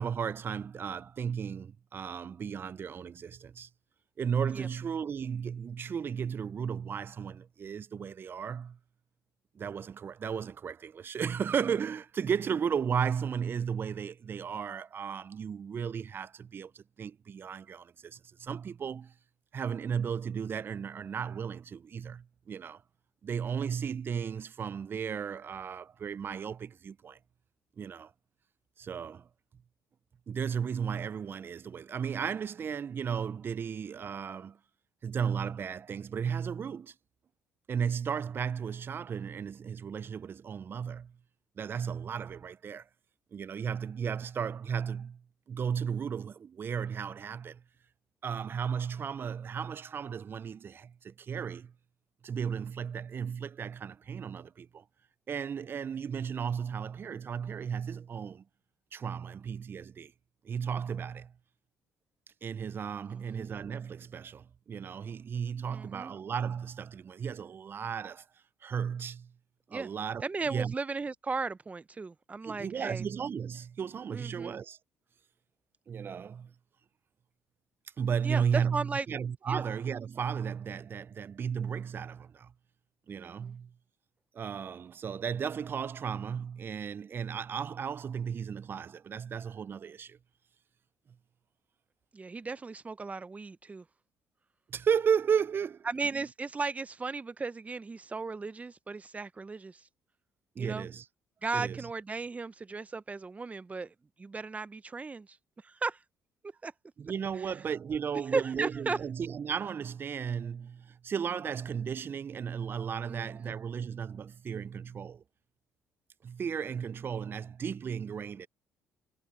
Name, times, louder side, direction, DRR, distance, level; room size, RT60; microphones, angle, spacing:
voice 1, 0.0-3.7 4.2-8.8 9.6-19.1 19.5-22.8 23.2-27.2 27.8-28.1 28.8-29.3 30.3-34.6 35.0-36.9 37.7-41.1 41.6-42.8 43.3-45.2 45.5-47.6 48.2-51.7 52.2-54.8 55.3-58.4 58.9-60.1 60.4-61.3 62.4-68.2 68.6-69.3 69.7-70.7 72.4-74.8 75.9-76.5 78.0-82.5 83.1-83.7 84.3-90.2 94.7-95.9 100.6-101.0 101.5-101.8 107.0-115.2 116.2-118.5, right 7 dB, 45° right, 0.5 m, -34 dB
voice 2, 63.1-63.5 65.7-66.1 69.7-69.9 70.2-73.0 74.1-74.5 78.2-79.1 79.5-79.6 83.1-83.5 92.1-93.8 95.9-99.8 100.6-100.9 101.4-105.4 105.6-106.0 106.4-106.7 107.4-107.6 108.3-109.0 113.1-113.6, right 4 dB, 25° right, 0.9 m, -36 dB
supercardioid pair, 60°, 5 cm